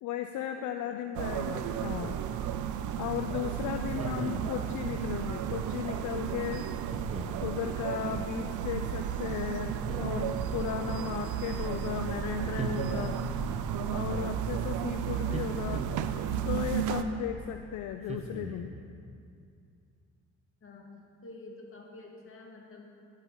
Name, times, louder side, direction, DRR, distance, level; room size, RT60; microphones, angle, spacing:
voice 1, 0.0-2.2 3.0-6.6 7.4-13.2 13.9-15.8 16.4-18.7, left 10 dB, 75° left, 7 dB, 0.5 m, -36 dB
voice 2, 0.6-1.1 20.6-20.9 21.2-22.9, left 2 dB, 45° left, 0 dB, 1.9 m, -49 dB
sound 1, 1.1-17.0, right 9 dB, 80° right, 0.5 m, -33 dB
sound 2, 3.9-4.7 6.9-7.5 9.7-10.5 12.6-13.4 15.3-16.2 18.1-18.8, right 2 dB, 20° right, 0.9 m, -39 dB
10.5 x 9.8 x 3.9 m, 2.4 s
cardioid pair, 90°, 30 cm